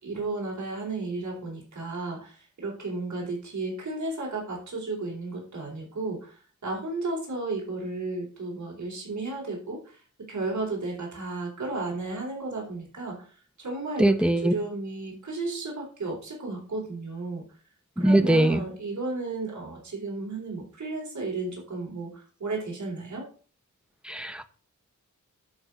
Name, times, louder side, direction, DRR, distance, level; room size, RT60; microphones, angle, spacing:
voice 1, 0.0-10.0 10.3-13.3 13.6-17.4 18.0-23.3, right 3 dB, 65° right, -2 dB, 4.4 m, -33 dB
voice 2, 14.0-14.5 18.0-18.6 24.1-24.5, right 1 dB, 5° right, 9 dB, 1.0 m, -21 dB
11.0 x 4.4 x 6.4 m, 0.38 s
wide cardioid pair, 105°, 31 cm